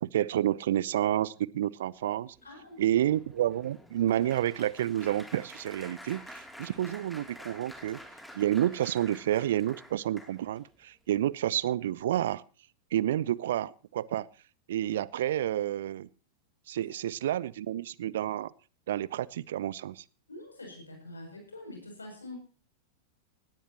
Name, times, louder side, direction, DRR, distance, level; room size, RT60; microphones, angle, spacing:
voice 1, 0.0-2.3 2.8-8.0 8.3-12.4 12.9-14.3 14.7-16.1 16.7-18.5 18.9-20.0, right 12 dB, 60° right, 24 dB, 0.6 m, -29 dB
voice 2, 2.4-3.0 16.9-17.0 20.3-22.4, equal, 80° left, 3 dB, 7.5 m, -45 dB
Applause, 2.4-10.7 11.3-11.6 11.8-12.0, equal, ahead, 3.0 m, -49 dB
18.5 x 17.5 x 3.0 m, 0.36 s
figure-of-eight pair, 90°, 0 cm